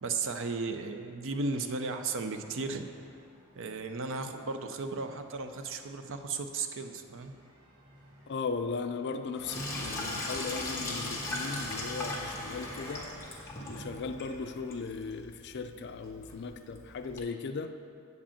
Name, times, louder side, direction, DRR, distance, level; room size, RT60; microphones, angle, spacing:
voice 1, 0.0-2.9 3.5-7.3, right 4 dB, 60° right, 7 dB, 0.6 m, -35 dB
sound 1, 1.4-13.1, equal, 20° right, 1.8 m, -60 dB
voice 2, 8.3-13.1 13.7-17.7, left 4 dB, 50° left, 8 dB, 0.4 m, -37 dB
Sink (filling or washing), 9.4-17.2, left 1 dB, 15° left, 1.3 m, -39 dB
8.1 x 5.1 x 7.0 m, 2.4 s
head